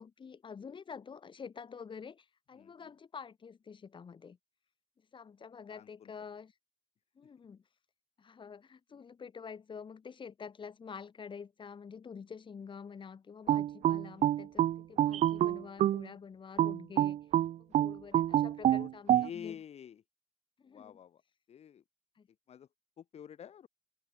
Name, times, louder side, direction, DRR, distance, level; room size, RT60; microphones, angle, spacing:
voice 1, 0.0-4.4 5.1-6.5 7.2-7.6 8.2-17.2 17.6-19.6 20.6-21.0 22.2-22.3, left 6 dB, 45° left, 3.5 m, -48 dB
voice 2, 2.5-2.9 5.7-6.1 18.6-20.0 20.6-21.2 21.5-21.8 22.5-22.7 23.0-23.7, left 9 dB, 65° left, 2.3 m, -48 dB
sound 1, 13.5-16.1 16.6-19.3, right 12 dB, 70° right, 0.4 m, -27 dB
open air
cardioid pair, 110°, 12 cm